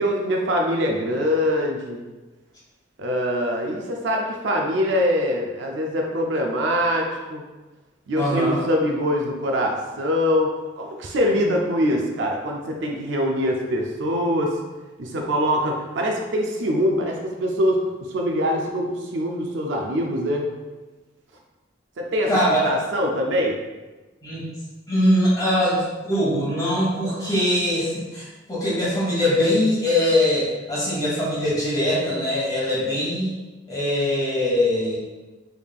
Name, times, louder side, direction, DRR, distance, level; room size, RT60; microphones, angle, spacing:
voice 1, 0.0-2.0 3.0-7.4 8.1-10.5 10.8-14.6 15.0-20.5 22.0-22.3 22.6-23.6, equal, 60° right, 1 dB, 0.4 m, -23 dB
voice 2, 8.1-8.6 22.3-22.6 24.2-24.5 24.9-33.3 33.7-35.0, left 1 dB, 20° left, -8 dB, 1.2 m, -22 dB
3.6 x 3.3 x 2.3 m, 1.2 s
head